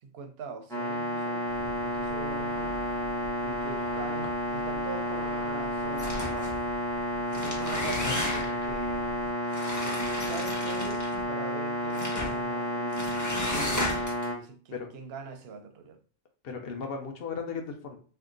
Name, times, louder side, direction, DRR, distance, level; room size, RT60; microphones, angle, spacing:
voice 1, 0.0-2.8 3.4-6.6 7.3-9.1 9.8-16.0, right 4 dB, 65° right, 0.7 m, -42 dB
sound 1, 0.7-14.3, equal, 5° left, 0.9 m, -31 dB
sound 2, 1.5-9.3, left 1 dB, 90° left, 1.0 m, -47 dB
sound 3, 6.0-6.6 7.2-8.7 9.5-11.2 11.9-12.4 12.9-14.3, left 1 dB, 20° left, 0.5 m, -34 dB
voice 2, 16.4-18.0, left 5 dB, 60° left, 0.8 m, -36 dB
2.8 x 2.2 x 3.7 m
omnidirectional pair, 1.2 m